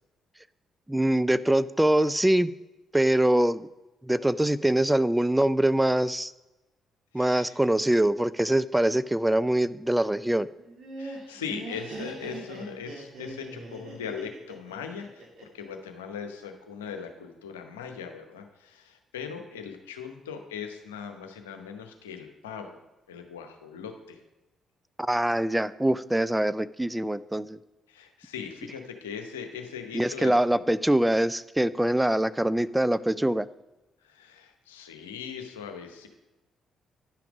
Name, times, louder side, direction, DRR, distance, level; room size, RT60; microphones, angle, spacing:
voice 1, 0.9-2.5 2.9-3.7 4.0-6.3 7.1-10.5 25.0-27.6 29.9-33.5, right 1 dB, 10° right, 16 dB, 0.4 m, -24 dB
voice 2, 7.1-7.6 11.0-15.2 15.5-22.8 23.1-24.2 27.9-30.6 34.0-36.1, left 7 dB, 85° left, 5 dB, 0.9 m, -39 dB
Laughter, 10.6-15.6, right 2 dB, 60° right, 2.2 m, -41 dB
10.5 x 5.9 x 5.1 m, 1.0 s
hypercardioid pair, 45°, 0 cm